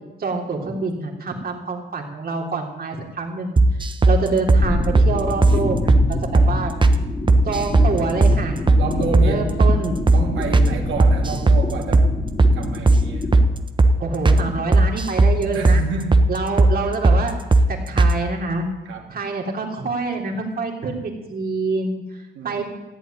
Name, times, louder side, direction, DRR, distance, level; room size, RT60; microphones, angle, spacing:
voice 1, 0.2-6.7 7.5-8.6 9.2-10.0 14.0-15.8 16.3-17.3 17.7-18.7 19.1-22.6, right 3 dB, 50° right, 1 dB, 3.4 m, -26 dB
sound 1, 3.6-4.2 4.5-4.6 4.9-5.1 5.4-5.6 5.9-6.0 6.3-6.5 6.8-7.0 7.3-7.9 8.2-8.4 8.7-8.8 9.1-9.3 9.6-9.8 10.1-10.2 10.5-10.7 11.0-11.6 11.9-12.1 12.4-12.6 12.9-13.0 13.3-13.5 13.8-13.9 14.2-14.4 14.7-15.3 15.6-15.8 16.1-16.3 16.6-16.7 17.0-17.2 17.5-17.7 18.0-18.1, right 2 dB, 25° right, 1.1 m, -14 dB
sound 2, 4.6-13.4, left 1 dB, 20° left, 2.8 m, -27 dB
voice 2, 8.7-9.5 10.1-12.1 12.5-13.3 15.5-16.2 18.9-19.1 22.3-22.6, right 4 dB, 70° right, 1 dB, 3.1 m, -29 dB
15.0 x 8.3 x 8.9 m, 1.1 s
cardioid pair, 90°, 20 cm